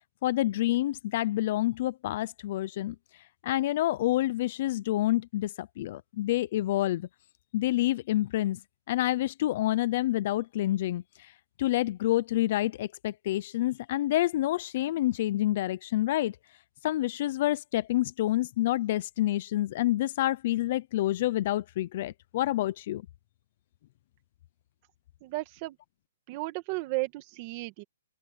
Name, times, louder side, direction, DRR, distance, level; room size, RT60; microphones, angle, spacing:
voice 1, 0.2-7.1 7.5-8.6 8.9-11.3 11.6-16.4 16.8-23.0, left 15 dB, 35° left, 0.4 m, -28 dB
voice 2, 25.2-25.8 26.3-27.8, right 22 dB, 25° right, 1.7 m, -34 dB
open air
hypercardioid pair, 175°, 0 cm